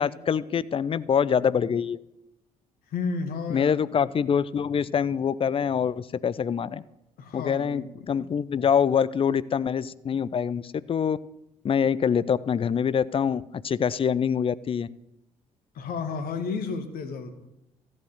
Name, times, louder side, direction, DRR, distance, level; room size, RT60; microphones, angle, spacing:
voice 1, 0.0-2.0 3.5-6.8 7.3-11.2 11.6-14.9, left 7 dB, 30° left, 18 dB, 0.6 m, -25 dB
voice 2, 2.9-3.8 7.2-8.0 15.8-17.3, left 5 dB, 55° left, 7 dB, 2.0 m, -32 dB
14.0 x 7.4 x 9.3 m, 0.88 s
figure-of-eight pair, 50°, 19 cm